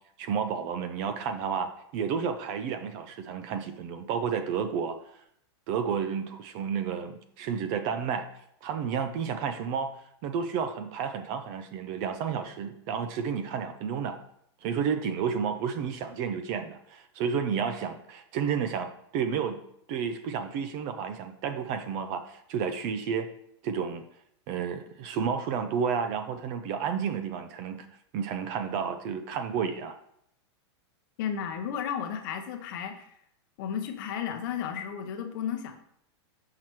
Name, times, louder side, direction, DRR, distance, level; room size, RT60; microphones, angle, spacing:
voice 1, 0.2-5.0 5.7-8.3 8.6-9.9 10.2-14.2 14.6-19.6 19.9-23.3 23.6-24.0 24.5-27.9 28.1-30.0, right 7 dB, 30° right, 8 dB, 0.4 m, -31 dB
voice 2, 31.2-33.1 33.6-35.8, left 8 dB, 45° left, 6 dB, 0.8 m, -33 dB
5.8 x 4.6 x 4.5 m, 0.73 s
supercardioid pair, 165°, 15 cm